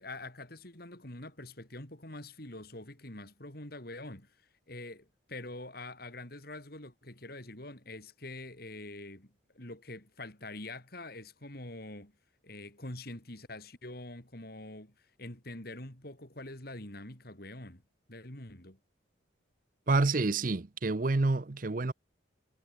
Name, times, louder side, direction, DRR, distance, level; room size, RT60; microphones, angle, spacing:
voice 1, 0.0-4.4 4.7-12.1 12.4-17.8 18.1-18.8, left 2 dB, 50° left, 3.9 m, -45 dB
voice 2, 19.9-21.9, right 3 dB, 45° right, 0.7 m, -28 dB
head